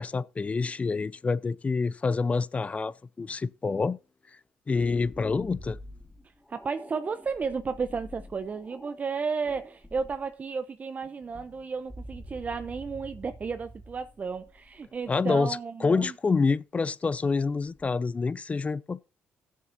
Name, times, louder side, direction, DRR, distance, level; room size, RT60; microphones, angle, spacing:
voice 1, 0.0-4.0 4.7-5.8 15.1-19.0, left 4 dB, 30° left, 0.6 m, -27 dB
sound 1, 4.7-9.0 9.5-10.3 11.0-15.2 17.4-17.9, left 1 dB, 5° left, 1.8 m, -47 dB
voice 2, 6.5-16.1, right 5 dB, 40° right, 0.7 m, -33 dB
16.5 x 7.5 x 2.7 m
supercardioid pair, 60°, 4 cm